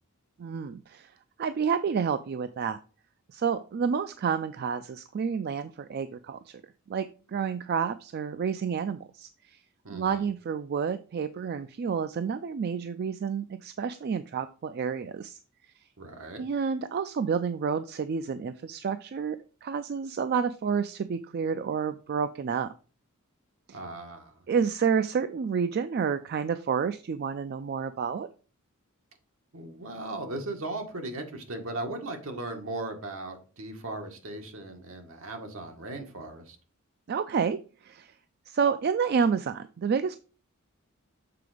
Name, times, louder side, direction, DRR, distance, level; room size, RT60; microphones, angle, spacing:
voice 1, 0.4-1.1 1.4-2.8 3.3-6.6 6.9-9.6 9.9-15.4 16.4-22.7 23.7-23.8 24.5-28.3 37.1-38.1 38.5-40.2, right 6 dB, 50° right, 11 dB, 0.3 m, -29 dB
voice 2, 9.8-10.3 16.0-16.4 23.7-24.3 29.5-36.6, right 2 dB, 70° right, 3 dB, 1.5 m, -37 dB
6.8 x 3.8 x 4.9 m, 0.36 s
head